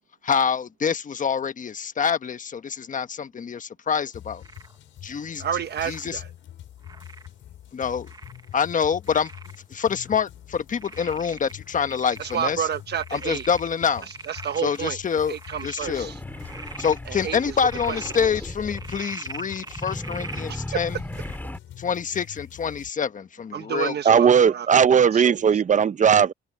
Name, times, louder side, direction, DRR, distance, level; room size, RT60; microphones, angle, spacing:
voice 1, 0.2-4.4 5.0-5.4 5.9-6.2 7.7-8.1 8.5-9.3 9.7-12.7 13.1-14.1 14.6-15.3 15.6-16.1 16.8-21.0 21.8-24.2, left 7 dB, 40° left, 1.3 m, -26 dB
sound 1, 4.1-22.9, left 11 dB, 75° left, 6.5 m, -45 dB
Frog, 4.4-4.8 5.7-6.1 6.8-7.3 8.1-8.5 9.1-9.6 10.0-10.1 10.8-12.4 12.7-14.8 15.3-15.9 16.3-17.0 17.5-18.2 18.7-20.5 21.1-21.4, right 3 dB, 20° right, 1.1 m, -41 dB
voice 2, 5.4-6.3 12.2-13.5 14.3-15.0 15.3-16.2 17.1-17.6 17.9-18.3 20.5-20.6 23.5-24.7 25.1-25.4, right 8 dB, 55° right, 1.2 m, -30 dB
sound 2, 15.8-19.0 19.7-21.6, left 1 dB, 10° left, 2.7 m, -36 dB
voice 3, 24.1-26.3, right 7 dB, 40° right, 0.8 m, -17 dB
cardioid pair, 90°, 20 cm